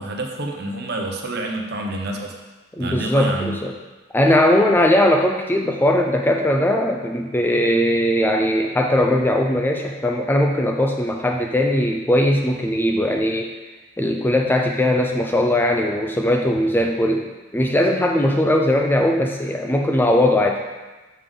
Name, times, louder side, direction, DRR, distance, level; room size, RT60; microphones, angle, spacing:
voice 1, 0.0-2.4 2.8-3.5, right 2 dB, 50° right, 1 dB, 0.8 m, -28 dB
voice 2, 2.8-3.7 4.1-13.5 14.0-17.3 17.5-20.6, left 1 dB, 10° left, 2 dB, 0.3 m, -19 dB
6.6 x 5.2 x 3.7 m, 1.2 s
head